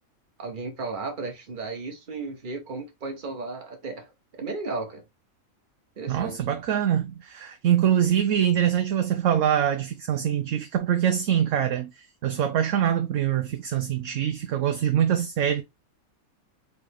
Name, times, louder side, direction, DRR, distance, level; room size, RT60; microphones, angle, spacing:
voice 1, 0.4-4.1 4.4-5.0 6.0-6.4, right 3 dB, 35° right, 1.2 m, -34 dB
voice 2, 6.1-15.6, right 9 dB, 65° right, 0.9 m, -24 dB
4.1 x 3.5 x 3.4 m
omnidirectional pair, 1.5 m